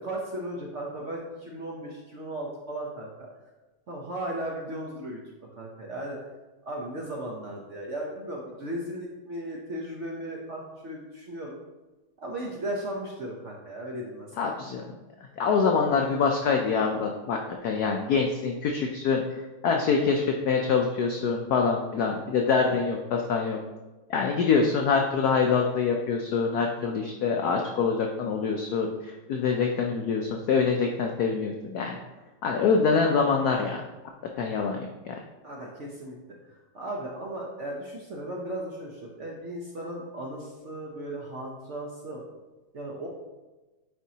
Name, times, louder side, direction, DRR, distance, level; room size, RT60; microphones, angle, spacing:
voice 1, 0.0-3.3 3.9-6.2 6.6-11.6 12.2-14.5 22.6-22.7 35.4-36.2 36.5-42.2 42.7-43.1, right 1 dB, 70° right, -2 dB, 0.7 m, -36 dB
voice 2, 14.4-14.8 15.4-17.4 17.6-23.6 24.1-32.0 32.4-33.8 34.4-35.1, left 5 dB, 85° left, 2 dB, 0.8 m, -25 dB
9.0 x 4.4 x 2.8 m, 1.1 s
omnidirectional pair, 2.3 m